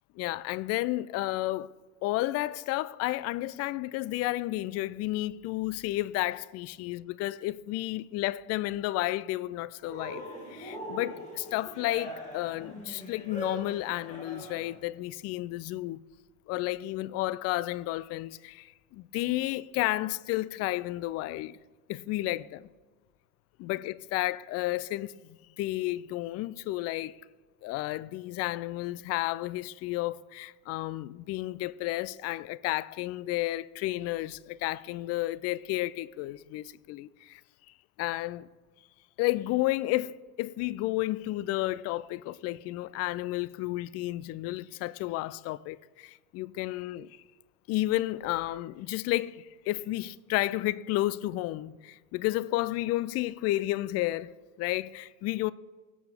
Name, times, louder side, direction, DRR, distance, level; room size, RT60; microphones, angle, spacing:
voice 1, 0.2-1.7 2.0-10.3 10.5-16.0 16.5-21.6 21.9-22.7 23.6-27.2 27.6-37.4 38.0-38.5 39.2-47.1 47.7-55.5, left 17 dB, 35° left, 0.5 m, -32 dB
Cheering, 9.8-14.8, equal, 15° left, 3.6 m, -42 dB
22.5 x 8.6 x 3.6 m
figure-of-eight pair, 65°, 42 cm